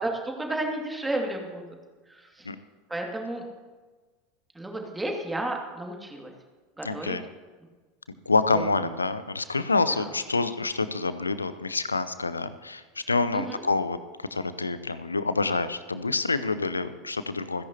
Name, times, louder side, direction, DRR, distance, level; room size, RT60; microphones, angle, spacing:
voice 1, 0.0-1.7 2.1-2.5 2.9-3.4 4.5-6.3 6.8-7.2 8.5-8.6 9.9-10.1 13.3-13.6, right 1 dB, 10° right, 1 dB, 2.3 m, -32 dB
voice 2, 6.8-7.3 8.3-17.6, left 3 dB, 80° left, 13 dB, 0.6 m, -27 dB
27.5 x 10.5 x 2.9 m, 1.3 s
figure-of-eight pair, 80°, 0 cm